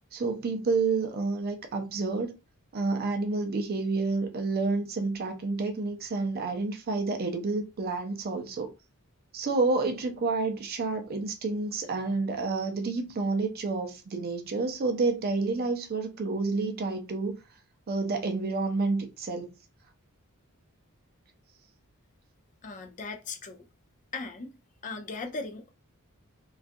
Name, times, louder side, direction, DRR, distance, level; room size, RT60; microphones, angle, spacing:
voice 1, 0.1-2.3 2.7-8.7 9.3-17.4 17.9-19.5, right 3 dB, 45° right, 0.4 m, -29 dB
voice 2, 22.6-23.6 24.1-24.6 24.8-25.7, left 3 dB, 35° left, 0.4 m, -38 dB
2.4 x 2.3 x 2.5 m
head